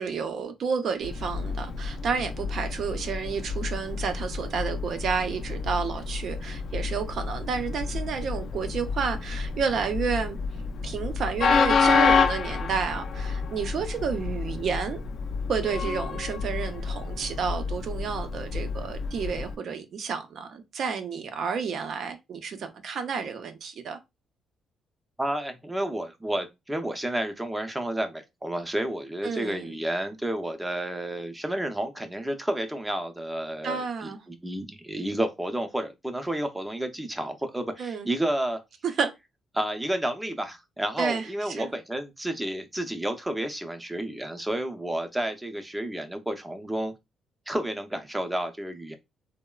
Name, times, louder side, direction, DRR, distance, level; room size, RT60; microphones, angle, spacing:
voice 1, 0.0-10.4 10.8-15.0 15.5-24.0 29.2-29.7 33.6-34.2 37.8-38.1 39.0-39.1 41.0-41.7, right 6 dB, 60° right, 0.5 m, -30 dB
Train, 1.0-19.6, left 5 dB, 60° left, 0.3 m, -29 dB
voice 2, 25.2-38.6 39.5-46.9 47.5-49.0, right 1 dB, 10° right, 0.5 m, -31 dB
3.0 x 2.0 x 2.3 m
cardioid pair, 90°, 0 cm